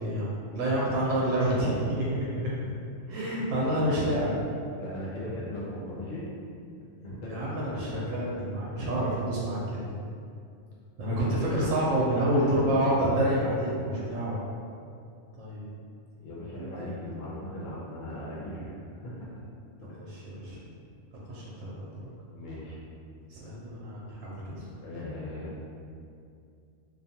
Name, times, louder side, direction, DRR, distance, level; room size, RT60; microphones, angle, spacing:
voice 1, 0.0-2.3 3.1-4.3 7.3-9.9 11.0-14.5 15.4-15.7 16.6-16.9 20.1-20.6 21.3-22.0 23.3-24.7, right 1 dB, 75° right, -5 dB, 0.9 m, -28 dB
voice 2, 4.7-6.2 7.0-7.6 12.3-13.6 16.2-19.3 22.3-22.8 24.7-25.6, left 1 dB, 75° left, -7 dB, 1.0 m, -39 dB
2.5 x 2.2 x 2.7 m, 2.4 s
omnidirectional pair, 1.3 m